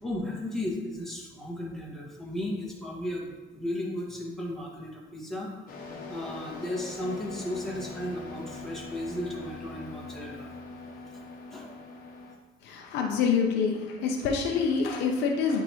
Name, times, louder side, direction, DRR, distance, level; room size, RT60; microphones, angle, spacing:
voice 1, 0.0-5.5 6.1-10.5 11.1-11.2 11.5-11.7, left 1 dB, ahead, -5 dB, 1.9 m, -35 dB
sound 1, 5.7-12.4, left 3 dB, 60° left, 1.1 m, -42 dB
voice 2, 12.6-15.6, left 5 dB, 90° left, 1 dB, 0.8 m, -26 dB
9.5 x 3.6 x 3.1 m, 1.3 s
cardioid pair, 110°, 17 cm